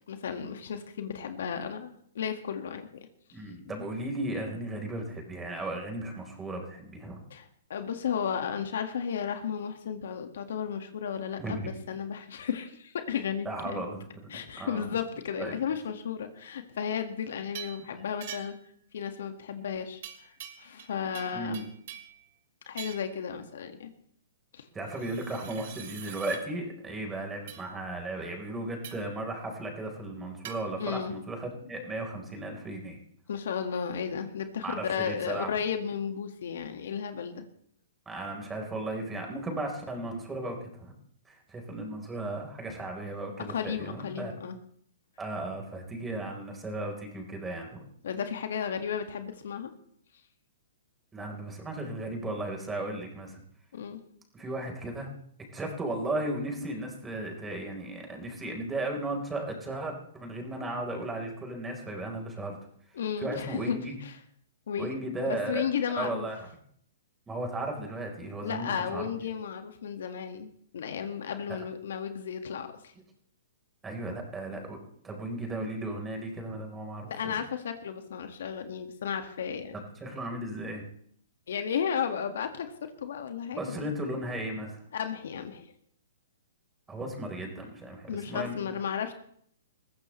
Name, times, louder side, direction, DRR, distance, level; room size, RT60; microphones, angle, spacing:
voice 1, 0.1-2.9 7.3-13.5 13.7-13.8 14.3-18.5 18.9-20.3 20.6-21.7 22.7-23.9 24.5-24.7 30.8-31.2 33.3-37.4 43.5-44.6 48.0-49.7 53.7-54.0 62.9-64.1 64.7-64.9 65.2-66.3 68.4-72.7 77.1-79.7 81.5-82.7 83.0-83.9 84.9-85.7 88.1-89.1, left 7 dB, 65° left, 7 dB, 1.9 m, -34 dB
voice 2, 3.3-7.2 11.4-11.7 13.4-14.9 15.4-15.5 18.0-18.1 21.3-21.6 24.7-33.0 34.6-35.6 38.1-40.9 41.3-44.3 45.2-47.8 51.1-53.4 54.3-55.1 55.5-62.6 63.2-63.9 64.8-65.7 65.9-66.5 67.3-69.1 71.5-71.6 73.8-74.8 75.0-77.3 80.0-80.8 83.5-84.8 86.9-88.6, right 2 dB, 10° right, 2 dB, 4.3 m, -35 dB
sound 1, 17.5-17.8 18.2-18.7 20.0-20.9 21.1-22.2 22.8-23.2 24.9-26.4 27.5-27.7 28.8-29.1 30.4-30.6, right 10 dB, 55° right, 3.0 m, -43 dB
21.0 x 15.0 x 3.3 m, 0.65 s
hypercardioid pair, 130°, 0 cm